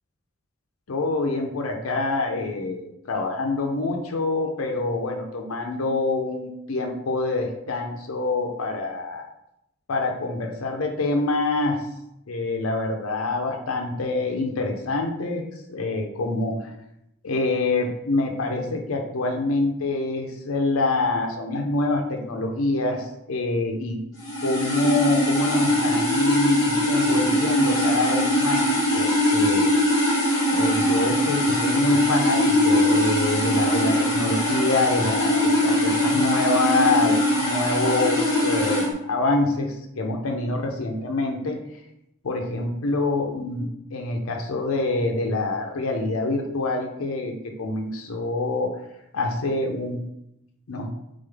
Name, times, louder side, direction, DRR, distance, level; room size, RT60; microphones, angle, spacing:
voice 1, 0.9-9.3 9.9-11.8 12.3-16.7 17.2-24.0 24.4-29.6 30.5-41.6 42.2-48.7 49.1-50.0 50.7-50.9, left 2 dB, 80° left, 2 dB, 0.6 m, -26 dB
sound 1, 24.2-38.9, left 1 dB, 15° left, 1.1 m, -22 dB
3.7 x 3.6 x 3.4 m, 0.83 s
head